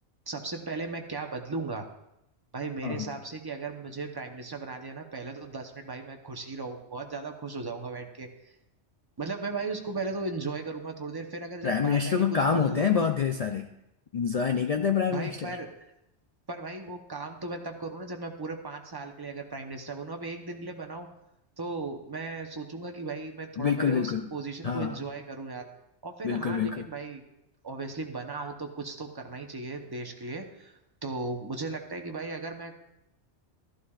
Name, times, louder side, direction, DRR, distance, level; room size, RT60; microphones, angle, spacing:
voice 1, 0.3-1.9 2.5-8.5 9.2-12.9 15.1-15.7 16.5-21.1 21.6-25.7 26.0-27.2 27.6-32.8, right 3 dB, 20° right, 3 dB, 0.8 m, -37 dB
voice 2, 11.6-13.7 14.1-15.5 23.6-24.3 24.6-25.0 26.2-26.9, left 6 dB, 65° left, 6 dB, 0.3 m, -26 dB
14.0 x 11.5 x 2.4 m, 0.86 s
omnidirectional pair, 1.2 m